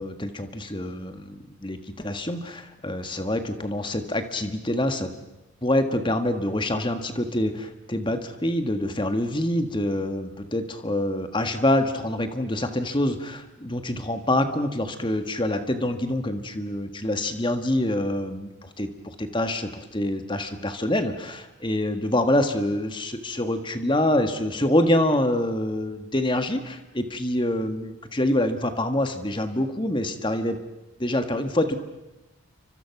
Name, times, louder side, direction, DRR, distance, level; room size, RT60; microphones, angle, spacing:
voice 1, 0.0-5.1 5.6-30.6 31.0-31.8, left 1 dB, 20° left, 8 dB, 1.6 m, -26 dB
29.0 x 24.5 x 6.0 m, 0.97 s
head